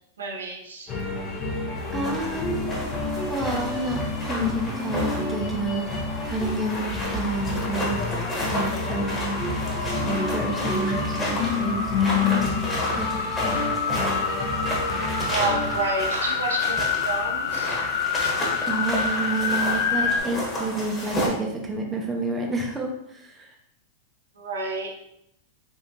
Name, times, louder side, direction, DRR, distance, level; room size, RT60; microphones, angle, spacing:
voice 1, 0.2-0.9 15.3-17.8 20.0-20.2 24.4-25.0, right 3 dB, 85° right, 0 dB, 0.7 m, -30 dB
sound 1, 0.9-15.8, left 4 dB, 30° left, 0.8 m, -29 dB
sound 2, 1.8-21.3, equal, 15° left, 1.3 m, -32 dB
voice 2, 1.9-2.8 3.3-5.9 6.2-8.0 8.5-12.4 13.0-13.7 18.7-23.5, right 2 dB, 15° right, 1 dB, 0.8 m, -30 dB
sound 3, 5.7-20.2, left 5 dB, 75° left, 0.5 m, -29 dB
3.6 x 2.8 x 2.8 m, 0.77 s
hypercardioid pair, 120°, 0 cm